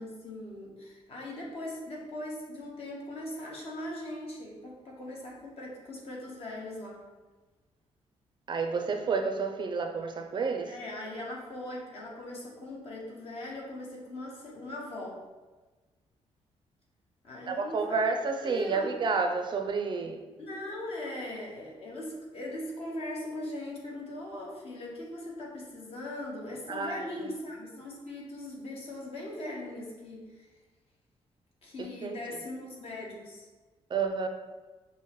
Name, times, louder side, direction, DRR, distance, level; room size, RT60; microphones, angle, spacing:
voice 1, 0.0-7.0 10.7-15.2 17.2-18.0 18.4-18.9 20.4-30.5 31.6-33.5, left 1 dB, 60° left, -3 dB, 1.1 m, -40 dB
voice 2, 8.5-10.7 17.5-20.2 26.7-27.1 31.8-32.2 33.9-34.3, right 4 dB, 45° right, 5 dB, 0.4 m, -30 dB
6.1 x 2.1 x 3.0 m, 1.3 s
cardioid pair, 110°, 11 cm